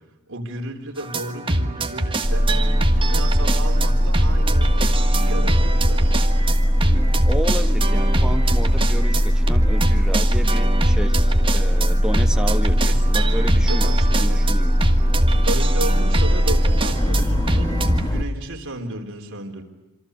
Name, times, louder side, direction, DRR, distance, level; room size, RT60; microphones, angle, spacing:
voice 1, 0.3-2.6 2.9-6.1 12.9-13.0 13.5-14.4 15.5-19.6, right 1 dB, 60° right, 3 dB, 3.9 m, -33 dB
sound 1, 1.0-18.1, right 1 dB, 25° right, 1.6 m, -25 dB
sound 2, 2.2-18.2, equal, 15° left, 1.2 m, -19 dB
voice 2, 6.9-14.8, equal, 5° right, 5 dB, 1.5 m, -31 dB
27.0 x 26.5 x 8.2 m, 1.0 s
head